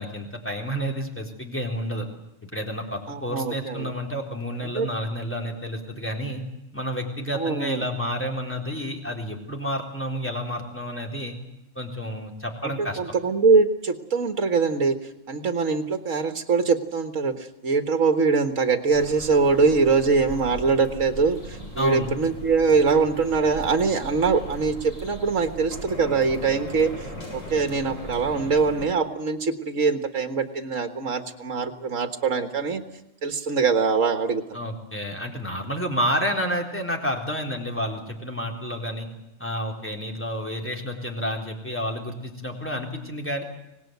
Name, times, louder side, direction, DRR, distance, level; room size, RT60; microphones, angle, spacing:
voice 1, 0.0-2.1 2.4-6.4 6.7-11.3 11.8-13.0 21.8-22.1 34.5-39.1 39.4-43.4, equal, 10° left, 2 dB, 3.9 m, -30 dB
voice 2, 3.1-3.9 4.8-4.9 7.3-7.9 12.6-15.0 15.3-32.8 33.2-34.6, right 4 dB, 75° right, 7 dB, 1.9 m, -23 dB
sound 1, 18.9-28.9, equal, 80° left, 7.8 m, -38 dB
25.5 x 19.0 x 9.4 m, 0.91 s
omnidirectional pair, 1.4 m